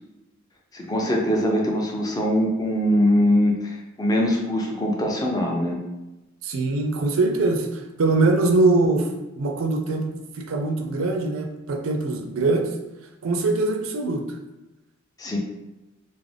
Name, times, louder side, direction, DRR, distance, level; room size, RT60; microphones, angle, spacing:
voice 1, 0.7-5.8 15.2-15.4, equal, 20° left, 0 dB, 0.4 m, -22 dB
voice 2, 6.4-9.1 9.4-12.7 13.2-14.2, right 2 dB, 90° right, 3 dB, 0.4 m, -22 dB
2.5 x 2.1 x 3.2 m, 1.0 s
head